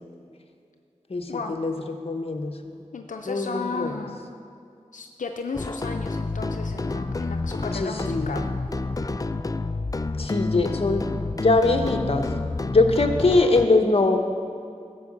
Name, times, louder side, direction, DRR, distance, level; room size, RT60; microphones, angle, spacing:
voice 1, 1.1-2.8 3.3-4.0 7.7-8.4 10.2-11.1 11.3-12.3 12.7-14.2, left 2 dB, 50° left, 5 dB, 0.9 m, -22 dB
voice 2, 2.9-4.2 4.9-8.5, left 4 dB, 85° left, 4 dB, 0.5 m, -34 dB
sound 1, 5.5-13.7, left 3 dB, 30° left, 0.4 m, -29 dB
12.0 x 4.8 x 7.2 m, 2.4 s
wide cardioid pair, 45°, 13 cm